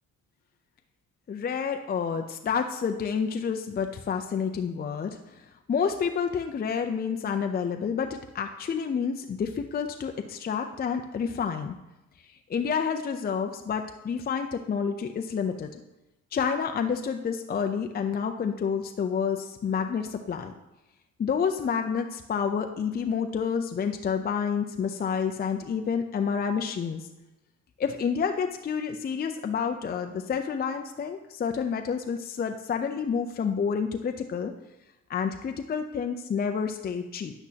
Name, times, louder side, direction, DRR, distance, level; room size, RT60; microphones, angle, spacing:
voice 1, 1.3-11.8 12.5-15.8 16.3-20.5 21.2-27.0 27.8-34.5 35.1-37.3, left 6 dB, 30° left, 5 dB, 0.5 m, -29 dB
9.9 x 7.9 x 2.8 m, 0.97 s
cardioid pair, 90°, 30 cm